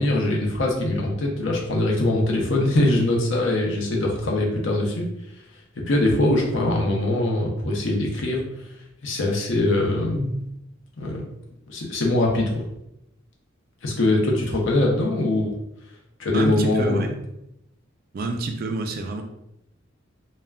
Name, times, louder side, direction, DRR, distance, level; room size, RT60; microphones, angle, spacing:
voice 1, 0.0-5.1 5.8-8.4 9.0-10.4 11.0-11.2 11.7-12.7 13.8-15.5 16.2-17.1, left 1 dB, 75° left, -1 dB, 0.6 m, -22 dB
voice 2, 16.3-17.1 18.1-19.2, right 2 dB, 50° right, 5 dB, 0.3 m, -28 dB
2.2 x 2.1 x 3.4 m, 0.82 s
head